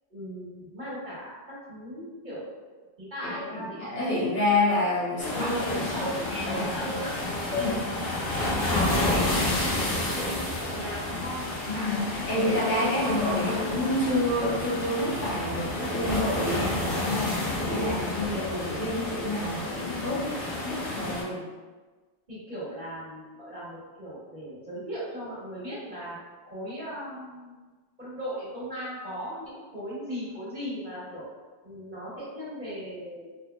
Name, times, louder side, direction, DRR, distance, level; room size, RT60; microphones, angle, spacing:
voice 1, 0.1-4.0 5.2-7.1 7.5-8.1 9.0-11.5 22.3-26.2 26.4-27.6 28.0-31.2 31.6-33.4, equal, 45° right, -11 dB, 1.8 m, -37 dB
voice 2, 3.5-5.5 5.9-6.6 7.5-7.9 8.7-9.2 11.7-21.4, left 1 dB, 85° left, -9 dB, 1.6 m, -28 dB
sound 1, 5.2-21.2, left 1 dB, 40° left, 1.1 m, -30 dB
4.2 x 2.8 x 2.3 m, 1.3 s
omnidirectional pair, 1.2 m